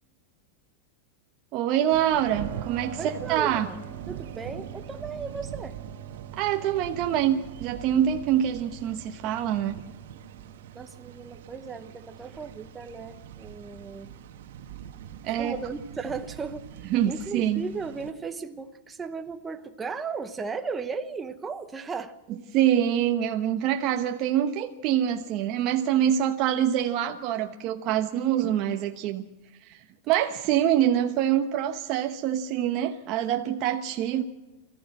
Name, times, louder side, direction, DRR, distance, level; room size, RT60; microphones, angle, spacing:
voice 1, 1.5-3.7 6.3-9.8 15.2-15.5 16.9-17.6 22.5-29.2 29.6-29.8 30.1-34.2, right 10 dB, 40° right, 4 dB, 1.0 m, -25 dB
sound 1, 1.9-18.1, right 9 dB, 80° right, 1.5 m, -43 dB
Keyboard (musical), 2.3-14.7, right 11 dB, 60° right, 3.7 m, -46 dB
voice 2, 3.0-3.8 4.1-5.8 10.7-14.1 15.3-22.1, right 5 dB, 15° right, 8 dB, 1.0 m, -36 dB
23.0 x 14.5 x 7.7 m, 1.1 s
supercardioid pair, 150°, 0 cm